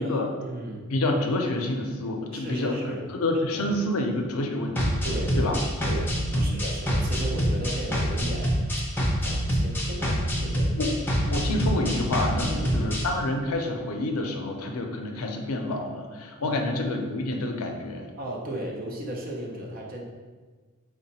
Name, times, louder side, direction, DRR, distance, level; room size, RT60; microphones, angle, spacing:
voice 1, 0.0-0.9 2.3-3.1 3.5-3.7 5.0-5.5 5.9-8.6 9.2-10.7 12.5-12.8 16.4-16.7 18.2-20.0, right 1 dB, 40° right, -1 dB, 0.5 m, -35 dB
voice 2, 0.9-2.8 3.1-5.0 5.4-5.6 6.3-6.4 10.8-11.0 11.3-18.1, left 1 dB, 80° left, 3 dB, 0.5 m, -28 dB
sound 1, 4.8-13.0, equal, 10° left, 0.5 m, -26 dB
3.9 x 2.1 x 4.0 m, 1.4 s
head